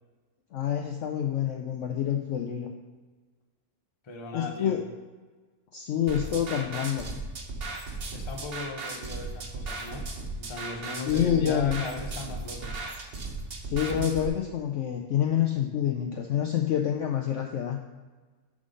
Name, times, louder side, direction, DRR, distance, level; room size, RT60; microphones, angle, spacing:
voice 1, 0.5-2.7 4.3-4.8 5.7-7.2 11.1-11.8 13.6-17.8, left 9 dB, 70° left, 3 dB, 0.7 m, -27 dB
voice 2, 4.0-4.8 8.1-10.0 10.4-12.8, left 3 dB, 30° left, 2 dB, 0.5 m, -38 dB
sound 1, 6.1-14.3, right 3 dB, 45° right, 0.9 m, -36 dB
7.3 x 3.8 x 5.1 m, 1.4 s
omnidirectional pair, 1.7 m